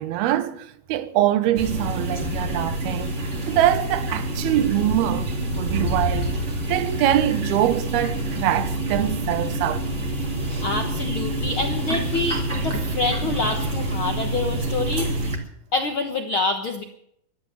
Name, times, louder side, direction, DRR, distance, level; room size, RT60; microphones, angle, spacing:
voice 1, 0.0-3.2 3.5-6.3 6.7-9.8, right 12 dB, 90° right, 2.9 m, -23 dB
sound 1, 1.5-15.4, right 1 dB, 25° right, 1.6 m, -27 dB
voice 2, 10.6-15.1 15.7-16.8, left 3 dB, 65° left, 1.2 m, -26 dB
15.0 x 12.0 x 7.5 m
omnidirectional pair, 4.4 m